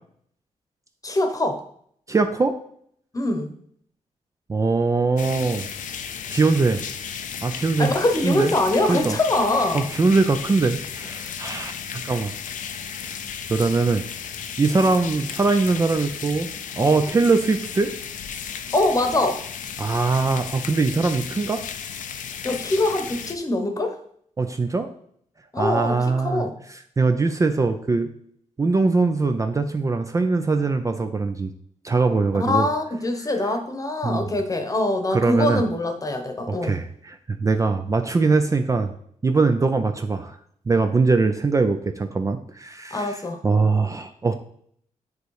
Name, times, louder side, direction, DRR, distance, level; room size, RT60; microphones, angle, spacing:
voice 1, 1.0-1.6 3.1-3.5 7.8-9.9 18.7-19.4 22.4-24.0 25.5-26.5 32.3-36.8 42.9-43.4, left 2 dB, 25° left, 6 dB, 1.0 m, -23 dB
voice 2, 2.1-2.6 4.5-5.7 6.3-6.8 7.4-7.9 8.2-8.5 8.9-9.2 9.7-12.3 13.5-14.0 14.6-16.5 16.8-17.9 19.8-21.6 24.4-24.9 25.6-26.5 27.0-28.1 28.6-31.5 31.8-32.7 34.0-34.2 35.1-35.6 36.5-38.9 39.2-40.4 40.7-44.3, right 3 dB, 25° right, 7 dB, 0.4 m, -22 dB
sound 1, 5.2-23.4, left 7 dB, 85° left, 0.6 m, -34 dB
9.3 x 3.1 x 4.8 m, 0.64 s
wide cardioid pair, 125°, 13 cm